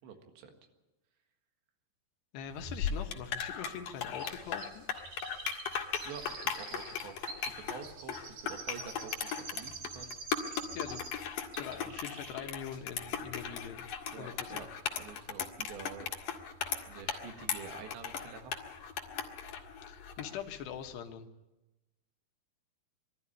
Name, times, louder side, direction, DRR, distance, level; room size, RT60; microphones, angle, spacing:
voice 1, 0.0-0.5 6.0-10.2 14.1-14.7 15.0-16.1 16.9-18.5, right 6 dB, 85° right, 5 dB, 4.0 m, -47 dB
voice 2, 2.3-4.9 10.7-11.1 11.6-13.9 14.2-14.7 19.9-21.3, left 8 dB, 75° left, 5 dB, 3.4 m, -43 dB
sound 1, 2.6-20.3, left 7 dB, 60° left, 3.0 m, -38 dB
Chirp tweet, 4.2-11.3 11.5-12.5 12.7-12.8, right 4 dB, 50° right, 3.2 m, -46 dB
22.5 x 13.5 x 9.9 m, 1.0 s
omnidirectional pair, 5.0 m